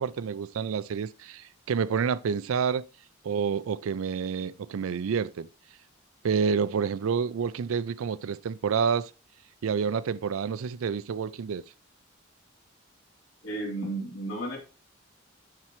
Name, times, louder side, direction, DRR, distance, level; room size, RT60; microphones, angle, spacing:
voice 1, 0.0-2.8 3.2-5.5 6.2-9.1 9.6-11.6, right 6 dB, 80° right, 0.4 m, -28 dB
voice 2, 13.4-14.6, right 2 dB, 90° left, 3.2 m, -33 dB
12.0 x 4.3 x 3.1 m
head